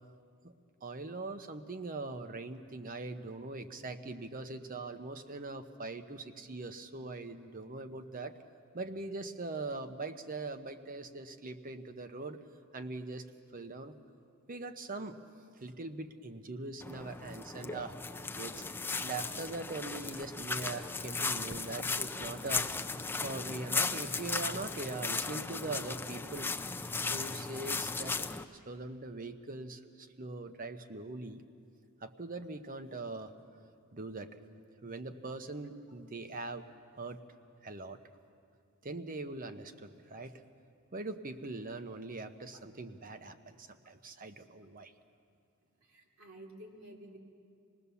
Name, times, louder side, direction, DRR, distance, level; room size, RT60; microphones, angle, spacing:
voice 1, 0.8-8.3 8.7-12.4 12.7-13.3 13.5-14.0 14.5-15.2 15.6-17.9 18.4-18.6 19.0-22.8 23.2-26.5 27.1-28.3 28.5-31.4 32.0-33.3 33.9-34.4 34.8-36.7 37.0-37.2 37.6-38.0 38.8-40.4 40.9-44.9, right 3 dB, 40° right, 9 dB, 0.9 m, -41 dB
sound 1, 16.8-28.4, left 4 dB, 10° left, 0.5 m, -36 dB
voice 2, 45.8-47.2, right 1 dB, 65° right, 0 dB, 2.9 m, -51 dB
26.5 x 19.0 x 7.0 m, 2.4 s
head